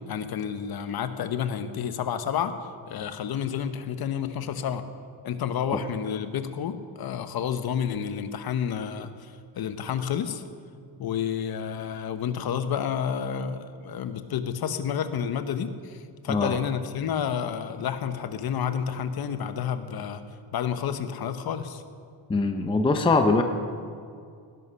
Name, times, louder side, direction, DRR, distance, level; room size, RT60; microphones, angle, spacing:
voice 1, 0.1-2.5 2.9-4.8 5.2-10.4 11.0-20.2 20.5-21.8, left 8 dB, 55° left, 10 dB, 1.0 m, -30 dB
voice 2, 22.3-23.4, left 3 dB, 10° left, 6 dB, 0.6 m, -22 dB
18.5 x 11.0 x 5.6 m, 2.3 s
wide cardioid pair, 180°, 44 cm